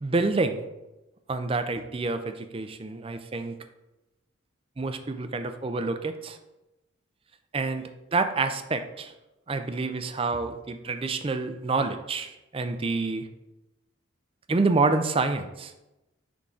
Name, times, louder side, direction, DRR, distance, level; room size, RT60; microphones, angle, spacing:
voice 1, 0.0-0.7 1.3-3.6 4.8-6.4 7.5-9.1 9.5-13.3 14.5-15.7, right 3 dB, 25° right, 8 dB, 0.4 m, -28 dB
9.8 x 3.7 x 3.8 m, 0.99 s
head